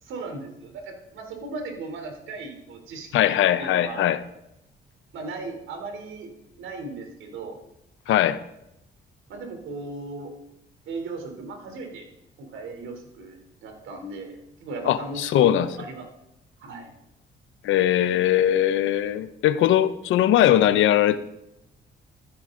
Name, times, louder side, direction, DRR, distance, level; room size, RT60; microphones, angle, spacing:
voice 1, 0.0-4.1 5.1-6.3 6.6-7.6 8.1-8.2 9.3-10.3 10.9-12.1 12.4-16.1 16.6-16.9, right 3 dB, 80° right, 3.5 m, -37 dB
voice 2, 3.1-4.2 8.1-8.4 14.9-15.7 17.6-21.2, left 11 dB, 85° left, 0.9 m, -20 dB
15.0 x 14.0 x 3.9 m
cardioid pair, 90°, 20 cm